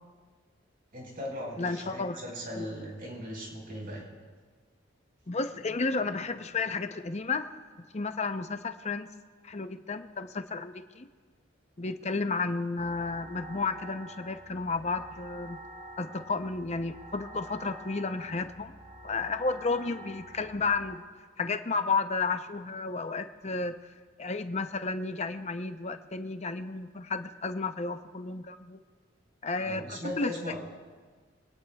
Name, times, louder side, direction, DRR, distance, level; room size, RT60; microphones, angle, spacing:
voice 1, 0.9-4.1 29.6-30.6, equal, 50° right, -1 dB, 4.7 m, -38 dB
voice 2, 1.6-2.2 2.6-2.7 5.3-7.5 7.9-9.1 9.4-11.1 11.8-15.6 16.0-18.7 19.0-21.0 21.4-23.8 24.2-28.8 29.4-30.6, left 4 dB, 35° left, 9 dB, 0.7 m, -32 dB
sound 1, 12.8-21.0, right 1 dB, 25° right, 1.7 m, -47 dB
24.0 x 17.5 x 2.3 m, 1.5 s
head